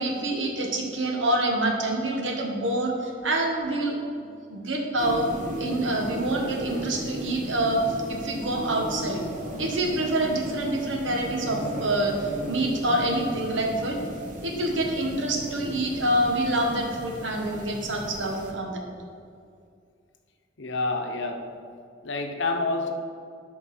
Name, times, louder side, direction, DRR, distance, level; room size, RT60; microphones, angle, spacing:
voice 1, 0.0-4.0 4.5-5.3 5.6-9.2 9.6-14.0 14.4-18.8, right 1 dB, 85° right, 1 dB, 1.3 m, -26 dB
sound 1, 5.0-18.5, right 1 dB, 45° right, 1.2 m, -36 dB
voice 2, 20.6-21.5 22.0-22.9, left 3 dB, 75° left, 5 dB, 0.8 m, -28 dB
12.5 x 4.5 x 4.3 m, 2.3 s
head